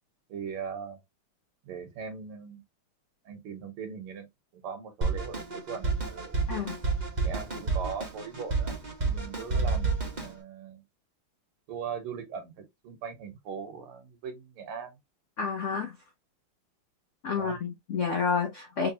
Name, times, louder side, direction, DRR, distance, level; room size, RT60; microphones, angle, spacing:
voice 1, 0.3-1.0 1.6-2.6 3.3-4.3 4.6-6.4 7.2-10.8 11.7-14.9 17.3-17.6, right 6 dB, 85° right, 2.1 m, -40 dB
Drum kit, 5.0-10.3, right 3 dB, 30° right, 0.9 m, -30 dB
voice 2, 6.5-6.8 15.4-16.0 17.2-18.9, left 5 dB, 70° left, 0.7 m, -29 dB
4.0 x 3.3 x 2.7 m
omnidirectional pair, 2.3 m